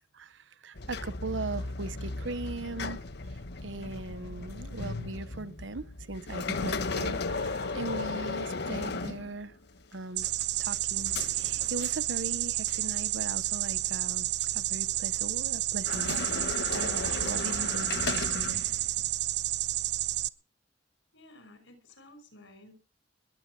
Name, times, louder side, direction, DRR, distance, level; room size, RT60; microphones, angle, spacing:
voice 1, 0.1-3.0 3.6-9.5 9.9-10.3 10.6-14.3 14.5-16.2 16.7-18.6, right 3 dB, 80° right, 16 dB, 1.0 m, -39 dB
sound 1, 0.8-9.8 10.2-12.4 12.7-12.9 13.6-14.6 15.7-19.1, left 3 dB, 65° left, 1.1 m, -36 dB
sound 2, 10.2-20.3, right 14 dB, 65° right, 0.6 m, -31 dB
voice 2, 21.1-22.7, left 1 dB, 80° left, 10 dB, 5.4 m, -53 dB
21.5 x 8.9 x 6.1 m, 0.37 s
head